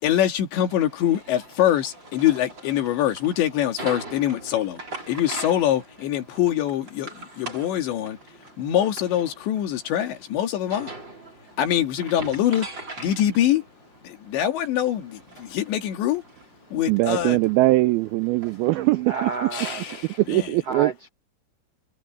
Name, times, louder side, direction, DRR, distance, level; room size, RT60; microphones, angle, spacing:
voice 1, 0.0-4.8 5.1-8.2 8.6-10.9 11.6-12.7 13.0-13.6 14.0-16.2 16.7-17.4 19.5-20.0 20.3-20.5, left 11 dB, 90° left, 4.6 m, -24 dB
sound 1, 0.7-20.5, right 2 dB, 25° right, 6.3 m, -42 dB
voice 2, 16.9-19.5 20.2-20.9, right 19 dB, 85° right, 2.1 m, -21 dB
voice 3, 18.6-19.8 20.7-21.1, right 5 dB, 70° right, 1.4 m, -30 dB
omnidirectional pair, 5.0 m